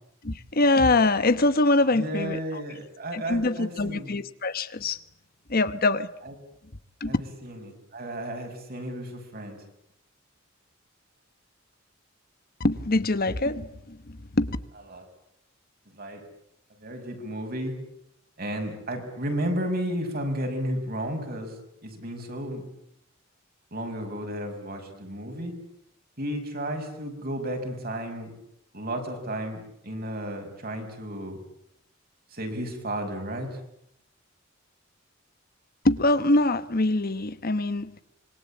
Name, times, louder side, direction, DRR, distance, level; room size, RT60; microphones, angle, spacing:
voice 1, 0.2-2.6 3.1-5.0 5.5-6.1 7.0-7.2 12.6-14.6 35.8-38.0, left 2 dB, 45° left, 1.2 m, -24 dB
voice 2, 1.9-4.1 6.2-6.3 7.1-9.6 14.9-15.0 15.9-16.2 16.8-17.8 18.4-22.6 23.7-25.5 26.2-28.3 28.7-31.4 32.3-33.6, right 1 dB, 50° right, 6.2 m, -33 dB
26.5 x 24.0 x 8.6 m
head